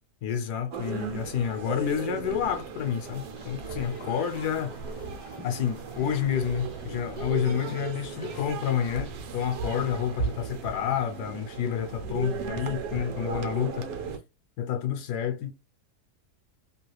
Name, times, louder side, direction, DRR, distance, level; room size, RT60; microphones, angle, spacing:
voice 1, 0.2-4.7 5.4-13.9 14.6-15.5, left 8 dB, 80° left, 1.1 m, -29 dB
sound 1, 0.7-14.2, right 6 dB, 70° right, 1.0 m, -36 dB
sound 2, 2.8-8.5, left 3 dB, 50° left, 0.4 m, -48 dB
2.9 x 2.4 x 3.1 m
omnidirectional pair, 1.8 m